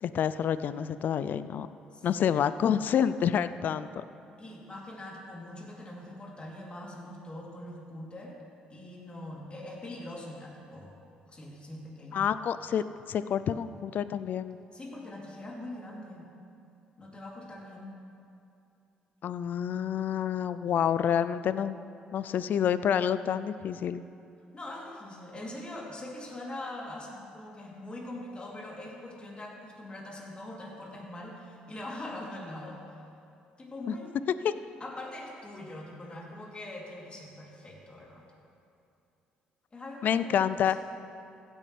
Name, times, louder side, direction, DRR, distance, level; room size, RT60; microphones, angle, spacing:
voice 1, 0.0-1.7 2.0-4.0 12.1-14.6 19.2-21.8 22.1-24.0 33.9-34.0 34.4-34.5 40.0-40.8, left 8 dB, 60° left, 14 dB, 0.4 m, -28 dB
voice 2, 1.9-2.4 4.4-8.4 8.7-10.9 11.3-12.3 14.7-16.3 17.0-18.0 24.5-33.0 33.6-34.2 34.8-38.2 39.7-40.7, left 1 dB, 30° left, -3 dB, 3.0 m, -42 dB
15.5 x 9.7 x 3.3 m, 2.6 s
supercardioid pair, 60°, 4 cm